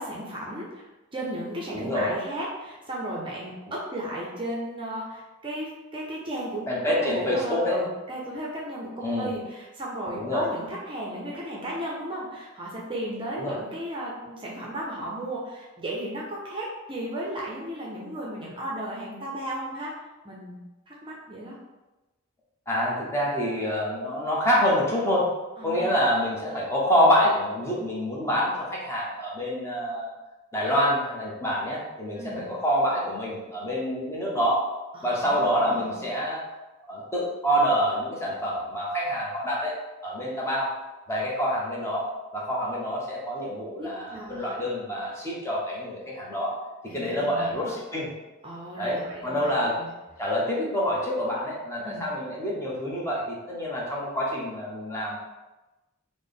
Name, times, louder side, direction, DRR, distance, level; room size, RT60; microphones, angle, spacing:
voice 1, 0.0-19.9 20.2-20.6 20.9-21.6 25.6-25.9 32.1-32.5 34.9-36.0 43.8-44.5 46.9-47.8 48.4-49.9 51.8-52.1, right 1 dB, 25° right, -4 dB, 0.5 m, -35 dB
voice 2, 1.7-2.1 6.7-7.8 9.0-9.3 10.1-10.4 13.4-13.6 22.7-25.3 25.6-30.1 30.5-34.7 35.0-36.4 36.9-39.7 40.0-40.7 41.1-42.1 42.3-46.6 46.9-48.1 48.8-49.8 50.2-55.2, equal, 15° left, -5 dB, 0.7 m, -26 dB
4.1 x 2.0 x 3.4 m, 1.1 s
head